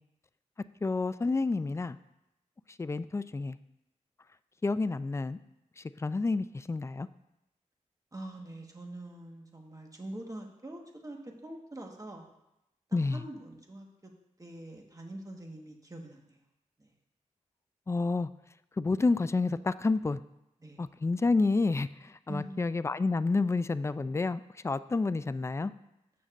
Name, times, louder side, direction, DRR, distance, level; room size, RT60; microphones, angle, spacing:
voice 1, 0.8-2.0 2.8-3.6 4.6-5.4 6.0-7.1 12.9-13.2 17.9-18.3 18.8-20.2 20.8-25.7, left 3 dB, 20° left, 14 dB, 0.3 m, -29 dB
voice 2, 8.1-12.3 13.1-14.1 14.4-16.4 16.8-16.9 20.6-20.8 22.3-22.6, right 1 dB, 25° right, 1 dB, 1.4 m, -44 dB
13.5 x 6.4 x 2.5 m, 0.87 s
wide cardioid pair, 75°, 13 cm